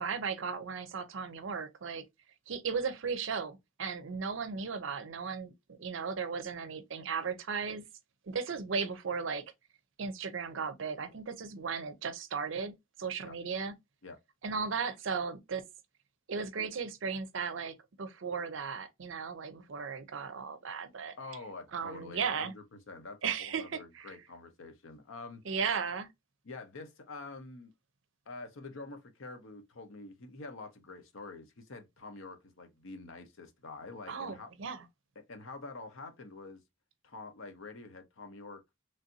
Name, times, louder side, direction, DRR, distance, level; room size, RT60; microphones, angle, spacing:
voice 1, 0.0-2.0 2.5-7.8 8.3-9.4 10.0-13.7 14.4-15.6 16.3-21.2 21.7-22.5 23.2-24.2 25.4-26.1 34.1-34.8, right 5 dB, 65° right, 0.5 m, -36 dB
voice 2, 21.2-25.4 26.4-27.7 28.3-34.5 35.3-36.6 37.0-38.6, left 3 dB, 75° left, 0.8 m, -46 dB
3.2 x 2.6 x 2.6 m
head